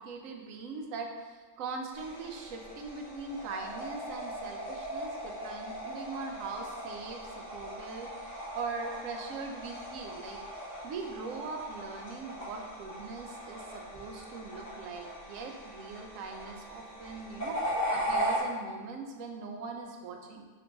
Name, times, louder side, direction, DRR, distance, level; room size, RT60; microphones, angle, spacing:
voice 1, 0.0-10.4 10.8-20.5, right 4 dB, 75° right, 3 dB, 1.0 m, -41 dB
sound 1, 1.9-18.4, equal, 35° left, 1.4 m, -38 dB
3.8 x 3.4 x 3.8 m, 1.4 s
omnidirectional pair, 1.4 m